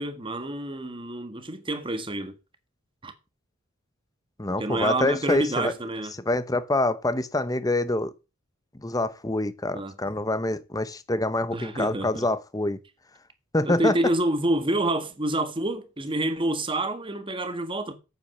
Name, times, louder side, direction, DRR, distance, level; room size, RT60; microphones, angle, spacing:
voice 1, 0.0-2.3 3.0-3.1 4.6-6.1 9.7-9.9 11.5-12.3 13.6-18.0, right 1 dB, 25° right, 1.6 m, -28 dB
voice 2, 4.4-5.7 6.2-8.1 8.8-12.8 13.5-13.9, left 2 dB, 15° left, 0.9 m, -26 dB
8.6 x 8.1 x 6.8 m
head